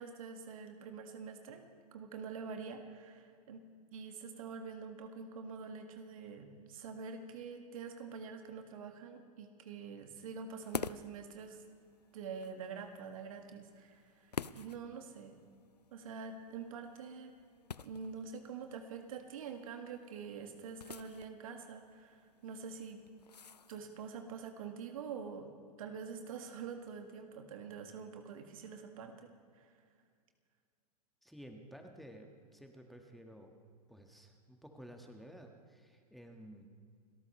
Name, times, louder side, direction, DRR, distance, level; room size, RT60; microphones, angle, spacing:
voice 1, 0.0-1.6 1.9-3.6 3.9-11.6 12.1-15.4 15.9-17.3 17.8-23.0 23.7-25.5 25.8-29.7, right 5 dB, 60° right, 5 dB, 1.8 m, -46 dB
sound 1, 10.6-24.2, left 6 dB, 90° left, 0.4 m, -49 dB
voice 2, 31.2-33.5 33.9-36.7, equal, ahead, 3 dB, 1.6 m, -53 dB
29.5 x 13.5 x 3.2 m, 2.1 s
figure-of-eight pair, 100°, 20 cm